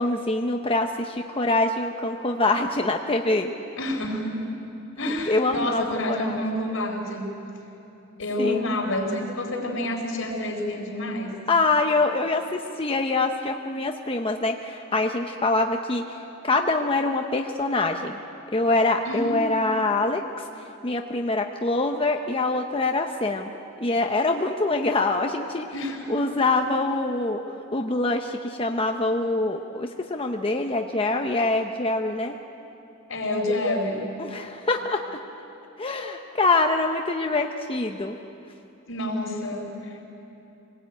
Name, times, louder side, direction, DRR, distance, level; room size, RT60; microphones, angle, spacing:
voice 1, 0.0-3.5 5.0-6.4 8.4-8.6 11.5-16.2 16.4-18.2 18.5-20.4 20.8-23.5 23.8-25.7 26.1-27.4 27.7-32.4 34.2-35.0 35.8-38.1, left 2 dB, 25° left, 3 dB, 0.9 m, -24 dB
voice 2, 3.8-4.5 5.0-7.3 8.2-11.3 19.0-19.6 25.7-26.7 33.1-34.1 38.9-40.0, left 1 dB, 75° left, 2 dB, 4.6 m, -28 dB
25.0 x 19.0 x 9.1 m, 3.0 s
head